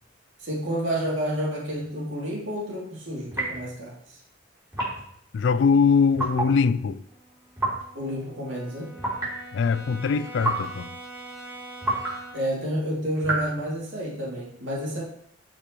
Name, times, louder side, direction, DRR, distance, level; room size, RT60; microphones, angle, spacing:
voice 1, 0.4-3.9 7.9-9.0 12.3-15.0, equal, 85° right, 2.5 m, -30 dB
sound 1, 3.3-3.7 4.7-5.1 6.1-6.6 7.6-7.9 9.0-9.4 10.4-10.8 11.8-12.2 13.2-13.5, right 2 dB, 20° right, 3.6 m, -28 dB
voice 2, 5.3-7.0 9.5-10.9, left 5 dB, 65° left, 0.3 m, -22 dB
Brass instrument, 7.0-12.6, right 2 dB, 55° right, 1.8 m, -43 dB
12.0 x 5.1 x 2.9 m
head